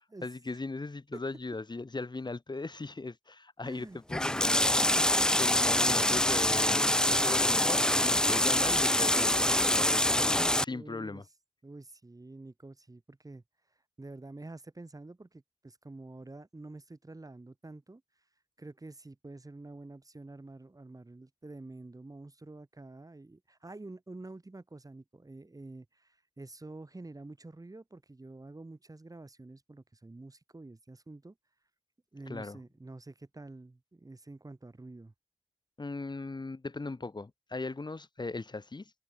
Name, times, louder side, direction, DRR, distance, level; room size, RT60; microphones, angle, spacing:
voice 1, 0.2-4.8 5.4-11.2 32.3-32.6 35.8-38.9, left 3 dB, 40° left, 3.1 m, -38 dB
voice 2, 3.6-4.0 10.7-11.2 11.6-13.4 14.0-18.0 18.6-31.4 32.1-35.1, right 2 dB, 30° right, 5.6 m, -48 dB
sound 1, 4.1-10.6, left 1 dB, 5° left, 0.4 m, -25 dB
wide cardioid pair, 75°, 12 cm